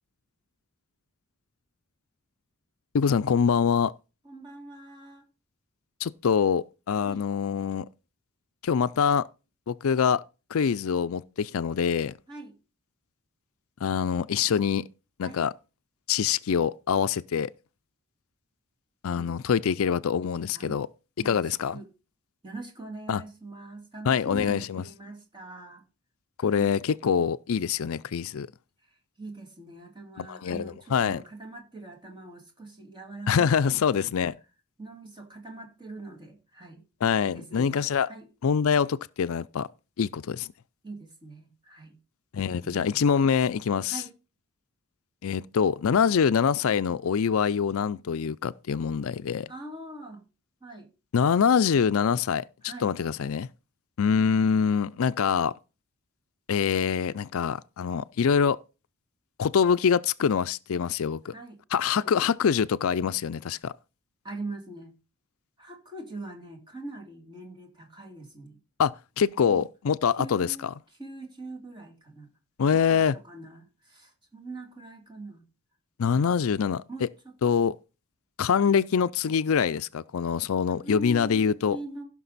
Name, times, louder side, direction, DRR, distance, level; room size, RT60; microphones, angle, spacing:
voice 1, 2.9-3.9 6.0-7.9 8.6-9.2 9.7-10.2 10.5-12.1 13.8-14.9 15.2-15.5 16.1-17.5 19.0-20.9 21.2-21.8 23.1-23.2 24.1-24.8 26.4-28.5 30.2-31.2 33.3-34.3 37.0-38.1 38.4-39.7 40.0-40.5 42.3-44.0 45.2-49.5 51.1-53.5 54.0-55.5 56.5-58.6 59.4-61.3 61.7-63.7 68.8-68.9 69.2-70.5 72.6-73.2 76.0-76.8 77.4-77.8 78.4-81.8, left 6 dB, 65° left, 0.4 m, -25 dB
voice 2, 4.2-5.3 7.0-7.2 12.3-12.5 15.2-15.4 19.1-19.3 20.5-20.8 21.2-21.9 22.4-25.8 26.5-26.7 28.8-34.3 34.8-36.8 37.2-38.3 40.8-41.9 42.6-43.1 43.8-44.1 49.5-50.2 50.6-50.9 52.6-52.9 61.3-61.6 61.9-62.1 64.2-64.9 65.6-68.6 69.5-69.6 70.2-72.3 72.9-75.4 76.9-77.6 80.8-82.1, right 2 dB, 20° right, 2.7 m, -43 dB
15.5 x 6.0 x 4.1 m
head